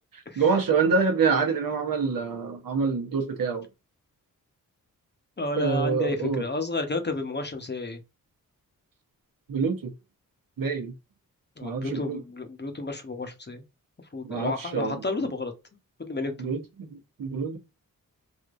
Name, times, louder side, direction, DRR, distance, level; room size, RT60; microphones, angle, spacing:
voice 1, 0.1-3.7 5.6-6.4 9.5-9.9 10.6-10.9 11.6-12.2 14.2-15.0 16.4-17.6, right 5 dB, 65° right, 0.9 m, -26 dB
voice 2, 5.4-8.0 11.6-13.6 14.1-15.5 16.0-16.5, left 2 dB, 30° left, 0.8 m, -31 dB
3.4 x 2.7 x 2.5 m
cardioid pair, 55°, 36 cm